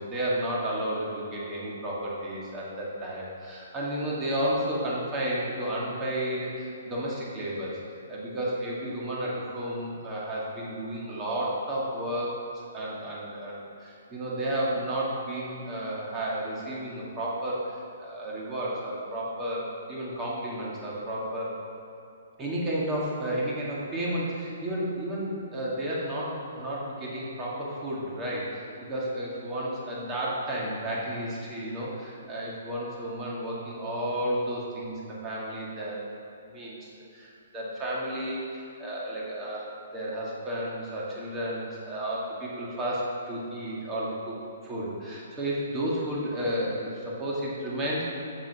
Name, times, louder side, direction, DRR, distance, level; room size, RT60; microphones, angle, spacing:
voice 1, 0.0-7.8 8.1-12.4 12.7-21.5 22.4-36.0 36.5-44.4 44.6-48.0, right 1 dB, 15° right, -6 dB, 2.1 m, -32 dB
7.6 x 7.2 x 5.9 m, 2.6 s
hypercardioid pair, 155°, 0 cm